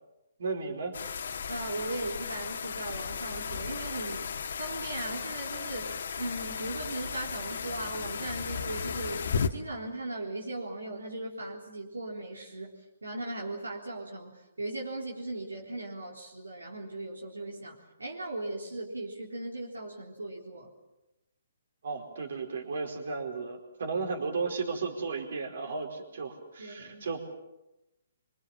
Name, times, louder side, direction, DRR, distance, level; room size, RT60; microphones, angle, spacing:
voice 1, 0.4-1.0 21.8-27.2, right 4 dB, 55° right, 3 dB, 4.7 m, -34 dB
sound 1, 0.9-9.5, left 6 dB, 55° left, 1.7 m, -35 dB
voice 2, 1.5-4.3 4.6-9.2 9.5-20.7 26.6-27.0, right 2 dB, 75° right, -1 dB, 3.8 m, -38 dB
25.5 x 25.5 x 7.3 m, 0.96 s
figure-of-eight pair, 130°, 0 cm